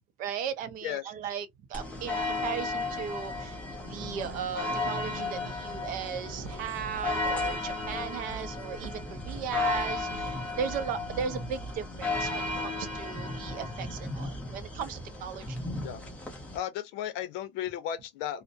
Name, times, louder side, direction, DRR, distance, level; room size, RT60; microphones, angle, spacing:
voice 1, 0.2-3.6 3.8-15.6, right 8 dB, 50° right, 0.5 m, -37 dB
sound 1, 1.7-16.6, left 2 dB, 5° left, 0.6 m, -34 dB
sound 2, 6.3-11.8, right 3 dB, 25° left, 1.1 m, -47 dB
voice 2, 16.5-18.4, left 11 dB, 75° left, 0.6 m, -34 dB
2.5 x 2.1 x 2.5 m
cardioid pair, 170°, 18 cm